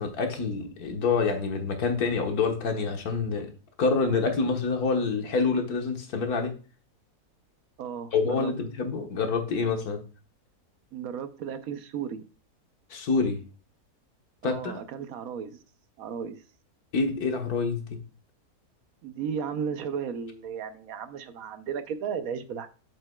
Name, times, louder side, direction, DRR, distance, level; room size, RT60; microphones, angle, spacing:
voice 1, 0.0-3.5 3.8-6.5 8.1-10.0 12.9-13.4 14.4-14.8 16.9-18.0, left 4 dB, 75° left, 5 dB, 1.7 m, -27 dB
voice 2, 7.8-8.5 10.9-12.2 14.4-15.6 16.0-16.4 19.0-22.7, right 7 dB, 70° right, 10 dB, 1.0 m, -34 dB
7.7 x 7.4 x 2.2 m, 0.36 s
omnidirectional pair, 1.6 m